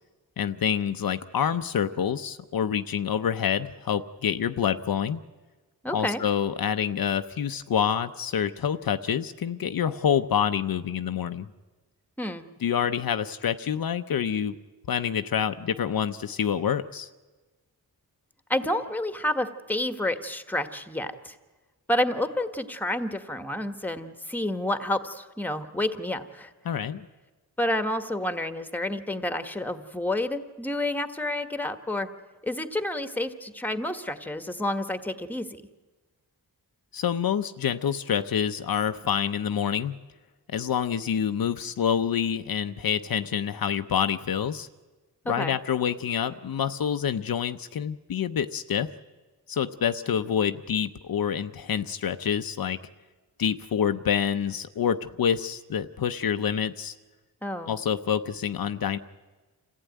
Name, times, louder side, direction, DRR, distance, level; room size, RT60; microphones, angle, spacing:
voice 1, 0.4-5.2 5.9-11.5 12.6-14.5 14.9-17.1 26.6-27.1 36.9-39.9 40.5-44.7 45.3-48.9 49.5-52.8 53.4-56.9 57.7-59.0, left 8 dB, 65° left, 9 dB, 0.7 m, -27 dB
voice 2, 5.8-6.2 12.2-12.5 18.5-21.3 21.9-26.5 27.6-32.1 32.4-35.5 45.2-45.6 57.4-57.7, left 1 dB, 5° left, 9 dB, 1.3 m, -29 dB
27.0 x 15.0 x 9.2 m, 1.3 s
wide cardioid pair, 100°, 39 cm